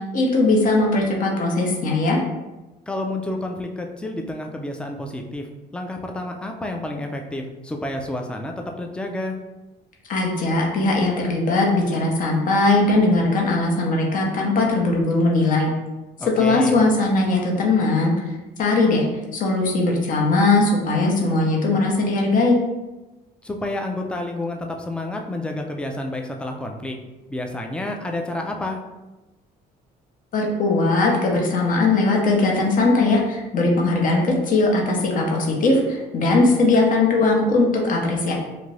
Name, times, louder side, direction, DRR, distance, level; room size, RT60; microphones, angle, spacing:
voice 1, 0.1-2.2 10.1-15.7 16.4-18.1 18.6-19.0 19.3-22.6 30.3-38.3, left 2 dB, 50° left, -1 dB, 0.8 m, -19 dB
voice 2, 2.9-9.4 16.2-16.8 23.4-26.9 27.3-28.8, left 1 dB, 5° left, 2 dB, 0.3 m, -29 dB
2.6 x 2.5 x 3.2 m, 1.1 s
cardioid pair, 110°, 17 cm